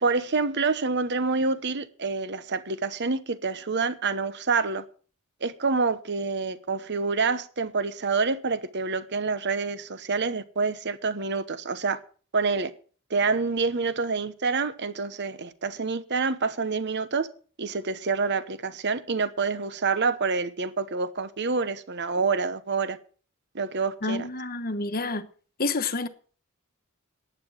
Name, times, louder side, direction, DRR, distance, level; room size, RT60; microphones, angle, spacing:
voice 1, 0.0-4.8 5.4-12.0 12.3-12.7 13.1-17.3 17.6-23.0 23.5-24.3, right 4 dB, 50° right, 1.0 m, -27 dB
voice 2, 24.0-25.3 25.6-26.1, left 3 dB, 40° left, 1.2 m, -28 dB
11.5 x 9.2 x 7.4 m
head